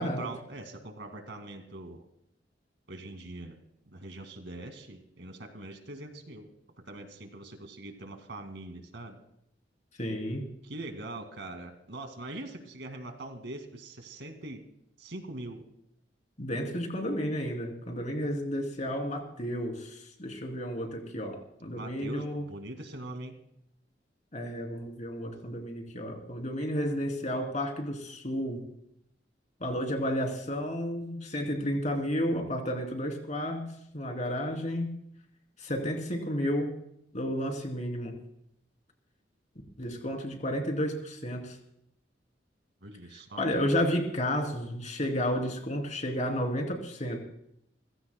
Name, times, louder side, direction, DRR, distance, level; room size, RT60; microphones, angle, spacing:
voice 1, 0.0-2.0 2.9-3.6 3.9-6.5 6.9-9.2 10.6-14.6 15.0-15.6 21.7-23.4 42.8-43.4, right 2 dB, 75° right, 6 dB, 2.1 m, -42 dB
voice 2, 10.0-10.4 16.4-22.4 24.3-28.6 29.6-33.6 33.9-34.9 35.6-36.7 37.1-38.2 39.8-41.6 43.4-47.2, equal, 40° left, 2 dB, 3.1 m, -32 dB
29.5 x 15.5 x 2.2 m, 0.75 s
head